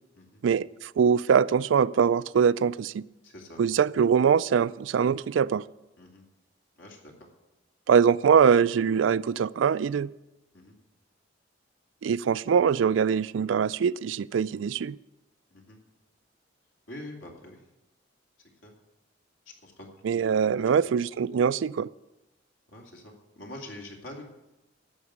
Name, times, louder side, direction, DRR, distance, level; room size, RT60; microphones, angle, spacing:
voice 1, 0.4-3.0 3.6-5.6 7.9-10.1 12.0-15.0 20.0-21.9, right 7 dB, 75° right, 18 dB, 0.3 m, -23 dB
voice 2, 3.2-3.6 6.0-6.2 6.8-7.1 10.5-10.8 15.5-15.8 16.9-17.6 18.6-18.7 19.6-20.4 22.7-24.2, left 1 dB, 75° left, 0 dB, 2.6 m, -45 dB
11.0 x 7.2 x 8.1 m, 0.97 s
head